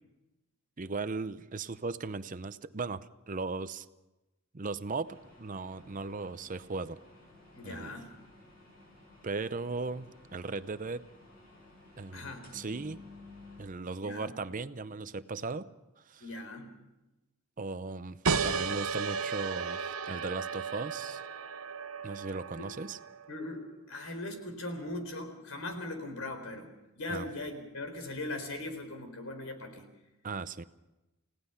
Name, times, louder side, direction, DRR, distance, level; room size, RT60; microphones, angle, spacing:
voice 1, 0.8-3.9 4.5-7.0 7.6-7.9 9.2-11.0 12.0-13.0 13.6-15.7 16.1-16.3 17.6-18.2 18.4-19.8 20.1-21.2 22.0-23.0 27.1-27.3 30.2-30.7, right 3 dB, 35° right, 13 dB, 0.6 m, -37 dB
sound 1, 5.0-13.7, left 2 dB, 40° left, 7.8 m, -55 dB
voice 2, 7.5-8.1 12.1-12.4 14.0-14.3 16.2-16.7 23.3-29.9, left 2 dB, 70° left, 6 dB, 4.2 m, -40 dB
sound 2, 18.2-23.4, right 5 dB, 80° right, 0.9 m, -34 dB
30.0 x 17.5 x 5.7 m, 1.0 s
head